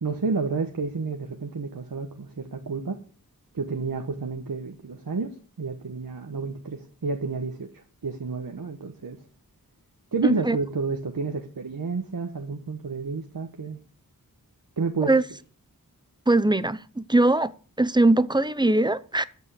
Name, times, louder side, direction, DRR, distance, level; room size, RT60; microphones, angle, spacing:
voice 1, 0.0-3.0 3.5-9.2 10.1-13.8 14.8-15.1, right 4 dB, 70° right, 1.3 m, -30 dB
voice 2, 10.2-10.6 15.0-15.2 16.3-17.5 17.8-19.2, right 2 dB, 10° right, 0.7 m, -21 dB
14.0 x 5.5 x 8.2 m
wide cardioid pair, 65°, 35 cm